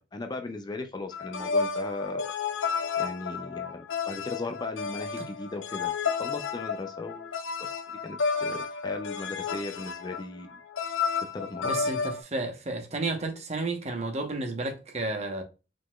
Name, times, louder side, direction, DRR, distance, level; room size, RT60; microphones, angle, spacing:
voice 1, 0.0-2.2 3.0-5.9 6.2-7.3 7.6-10.6 11.3-11.8, left 2 dB, 20° left, 0.4 m, -37 dB
sound 1, 1.1-12.2, left 5 dB, 80° left, 0.7 m, -31 dB
voice 2, 11.6-15.4, right 2 dB, 35° right, 0.9 m, -32 dB
5.0 x 3.9 x 2.3 m
head